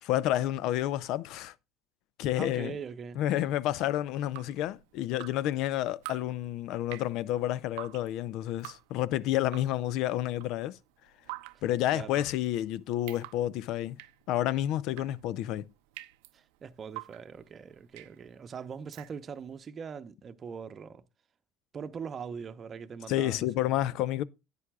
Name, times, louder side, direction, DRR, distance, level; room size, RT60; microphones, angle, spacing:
voice 1, 0.0-1.5 2.2-2.8 3.2-10.8 11.6-14.0 14.3-15.7 23.1-24.2, left 13 dB, 65° left, 0.5 m, -30 dB
voice 2, 2.4-3.5 11.5-11.6 11.9-12.2 16.3-21.0 21.7-23.9, right 6 dB, 40° right, 0.8 m, -42 dB
Drip, 4.1-19.6, right 22 dB, 80° right, 0.5 m, -49 dB
11.0 x 8.5 x 2.3 m
supercardioid pair, 85°, 0 cm